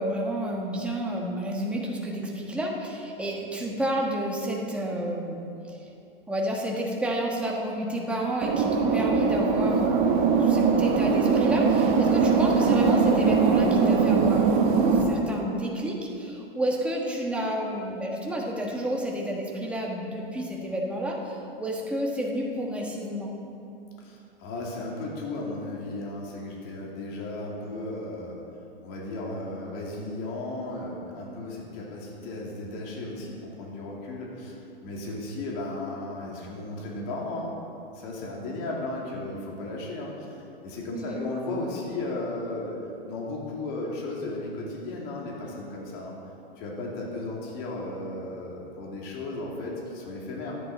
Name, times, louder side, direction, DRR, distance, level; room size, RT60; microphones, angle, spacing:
voice 1, 0.0-5.8 6.3-23.3 40.9-41.2, right 1 dB, 5° right, -2 dB, 1.4 m, -30 dB
sound 1, 8.4-15.0, right 5 dB, 40° right, 1.5 m, -21 dB
voice 2, 24.0-28.4 28.8-37.5 37.9-42.8 43.0-46.1 46.6-50.5, left 2 dB, 45° left, -2 dB, 2.7 m, -35 dB
13.5 x 10.5 x 4.3 m, 2.7 s
hypercardioid pair, 130°, 30 cm